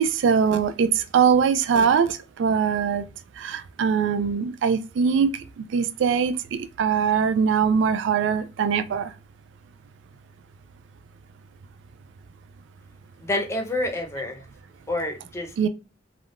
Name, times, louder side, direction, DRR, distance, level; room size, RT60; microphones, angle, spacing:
voice 1, 0.0-3.0 3.4-5.3 5.7-9.1 15.6-15.7, right 6 dB, 70° right, 0.3 m, -22 dB
voice 2, 13.2-14.4 14.9-15.5, left 1 dB, 15° left, 0.6 m, -28 dB
3.4 x 2.3 x 2.4 m
head